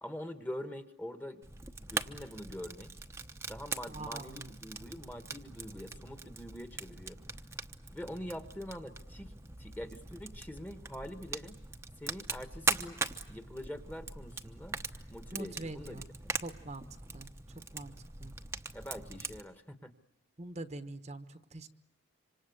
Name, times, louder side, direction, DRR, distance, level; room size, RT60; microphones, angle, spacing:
voice 1, 0.0-1.4 1.8-2.9 3.5-7.2 7.9-11.6 12.0-13.0 13.3-14.8 15.1-16.3 18.7-19.9, equal, 10° left, 8 dB, 1.4 m, -44 dB
Fire, 1.4-19.4, right 3 dB, 15° right, 1.0 m, -41 dB
voice 2, 3.9-4.5 15.3-16.0 16.4-16.9 17.1-17.3 17.7-17.9 18.2-18.3 20.4-21.7, right 2 dB, 35° right, 9 dB, 1.1 m, -43 dB
26.5 x 26.0 x 8.0 m, 0.84 s
head